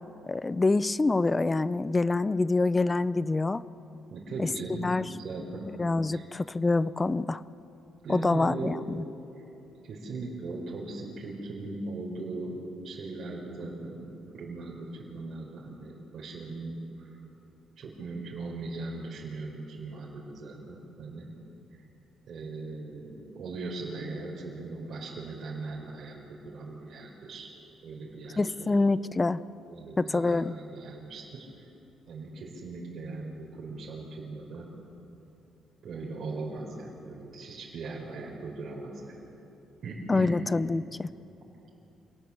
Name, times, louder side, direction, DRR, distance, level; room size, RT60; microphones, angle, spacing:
voice 1, 0.3-3.6 4.4-4.5 4.8-5.0 5.8-7.4 8.1-9.0 28.4-29.4 30.0-30.5 40.1-41.1, left 3 dB, 20° left, 17 dB, 0.6 m, -26 dB
voice 2, 4.1-4.9 5.2-5.7 6.1-6.2 8.0-8.8 9.3-9.4 9.8-12.6 12.8-14.0 14.3-17.2 17.8-21.3 22.3-27.5 27.8-28.8 29.6-31.7 32.1-34.7 35.8-39.3 39.8-40.4, right 3 dB, 60° right, -4 dB, 4.3 m, -39 dB
27.5 x 18.5 x 7.3 m, 3.0 s
cardioid pair, 90°, 0 cm